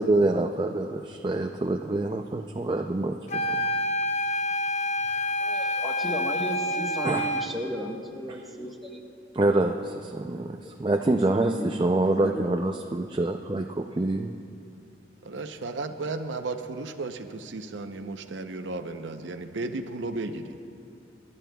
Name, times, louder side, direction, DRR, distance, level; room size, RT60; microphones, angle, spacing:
voice 1, 0.0-3.7 7.0-7.3 9.3-14.3, right 2 dB, 25° right, 3 dB, 0.3 m, -26 dB
sound 1, 3.3-7.6, left 1 dB, 35° left, 0.5 m, -28 dB
voice 2, 5.4-9.0 11.1-12.4, equal, ahead, -3 dB, 1.1 m, -35 dB
voice 3, 15.3-20.6, right 3 dB, 80° right, 7 dB, 0.7 m, -34 dB
27.0 x 12.0 x 2.3 m, 2.5 s
head